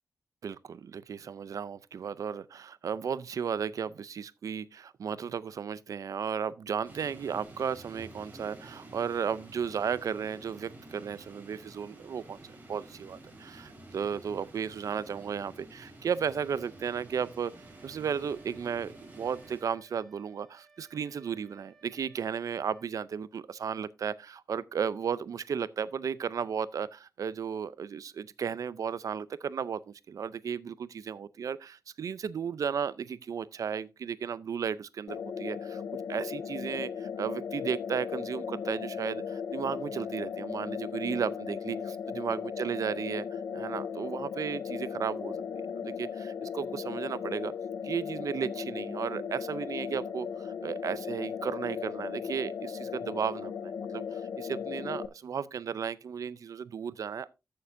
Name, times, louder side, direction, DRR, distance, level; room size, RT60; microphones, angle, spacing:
voice 1, 0.4-12.4 12.7-17.5 17.8-35.8 36.1-47.5 47.8-57.3, right 7 dB, 65° right, 0.5 m, -34 dB
sound 1, 6.8-19.6, right 2 dB, 25° right, 3.0 m, -50 dB
Wind instrument woodwind instrument, 16.4-23.0, right 4 dB, 5° left, 2.2 m, -61 dB
sound 2, 35.1-55.1, left 7 dB, 75° left, 0.6 m, -37 dB
14.0 x 6.7 x 2.6 m
wide cardioid pair, 125°, 6 cm